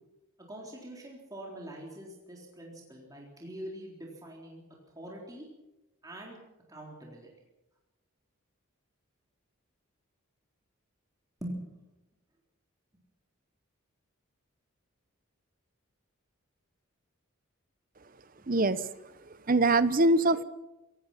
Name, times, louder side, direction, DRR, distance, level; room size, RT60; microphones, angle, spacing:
voice 1, 0.5-4.6 5.0-5.5 6.0-6.4 6.7-7.3 11.4-11.9 18.4-18.5, right 1 dB, 15° right, -2 dB, 3.8 m, -43 dB
voice 2, 18.5-18.9 19.3-20.4, right 2 dB, 40° right, 14 dB, 0.9 m, -24 dB
26.0 x 18.0 x 5.8 m, 0.99 s
head